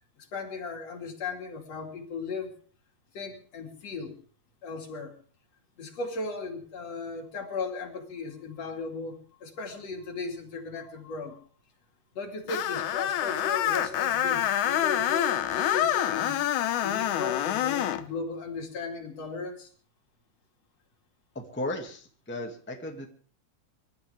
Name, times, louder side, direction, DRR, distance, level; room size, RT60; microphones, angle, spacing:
voice 1, 0.2-2.6 3.1-4.2 4.6-5.2 5.8-11.4 12.1-16.4 16.8-19.7, left 4 dB, 60° left, 3 dB, 3.5 m, -36 dB
Screech, 12.5-18.0, left 11 dB, 85° left, 2.4 m, -27 dB
voice 2, 21.3-23.1, left 1 dB, 5° left, 2 dB, 1.7 m, -35 dB
26.5 x 12.5 x 3.5 m, 0.44 s
omnidirectional pair, 3.4 m